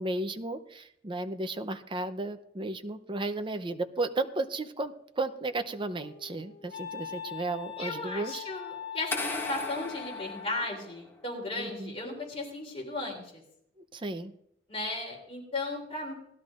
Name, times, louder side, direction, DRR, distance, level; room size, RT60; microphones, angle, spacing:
voice 1, 0.0-8.4 11.5-11.9 13.9-14.3, right 2 dB, 30° right, 8 dB, 0.6 m, -34 dB
Wind instrument woodwind instrument, 5.3-10.8, left 9 dB, 80° left, 1.5 m, -42 dB
voice 2, 7.8-13.3 14.7-16.1, left 2 dB, 35° left, 0 dB, 3.4 m, -36 dB
sound 1, 9.1-11.2, left 2 dB, 15° left, 1.3 m, -37 dB
19.0 x 12.0 x 2.5 m, 0.73 s
head